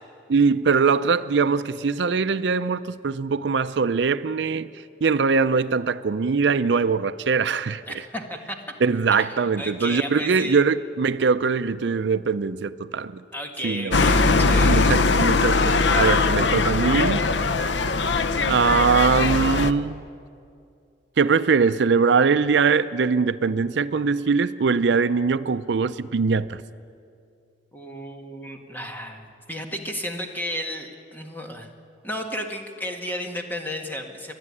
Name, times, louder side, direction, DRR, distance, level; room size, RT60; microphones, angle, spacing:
voice 1, 0.3-4.7 5.0-7.8 8.8-13.2 13.6-14.0 14.5-17.3 18.5-20.0 21.2-26.6, right 5 dB, 65° right, 0.5 m, -22 dB
voice 2, 7.9-8.6 9.1-10.6 13.3-14.8 27.7-31.7 32.0-34.4, equal, 10° left, 1.8 m, -33 dB
sound 1, 13.9-19.7, left 3 dB, 70° left, 0.7 m, -20 dB
30.0 x 11.5 x 9.8 m
head